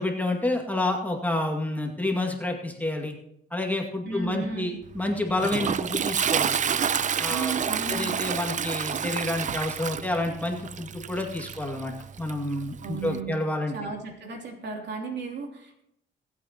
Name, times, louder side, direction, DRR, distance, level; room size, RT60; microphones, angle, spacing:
voice 1, 0.0-3.1 3.5-6.6 7.2-7.6 7.9-11.9 12.2-13.7, left 2 dB, 10° left, 1 dB, 2.1 m, -29 dB
voice 2, 4.0-4.8 7.3-8.2 12.8-13.4 13.7-15.8, right 4 dB, 60° right, 1 dB, 3.0 m, -34 dB
Toilet flush, 4.9-13.2, right 7 dB, 40° right, 0.5 m, -29 dB
26.0 x 8.6 x 3.0 m, 0.76 s
cardioid pair, 90°, 20 cm